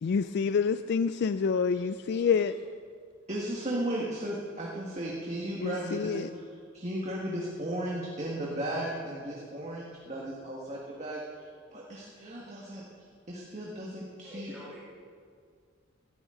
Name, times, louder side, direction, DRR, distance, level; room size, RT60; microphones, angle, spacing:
voice 1, 0.0-2.5 5.6-6.3, left 6 dB, 55° left, 11 dB, 0.3 m, -27 dB
voice 2, 3.3-6.4 6.7-14.5, right 1 dB, 35° right, -4 dB, 1.7 m, -36 dB
voice 3, 14.2-14.8, left 1 dB, 10° right, -9 dB, 2.1 m, -45 dB
16.5 x 14.0 x 3.8 m, 2.1 s
head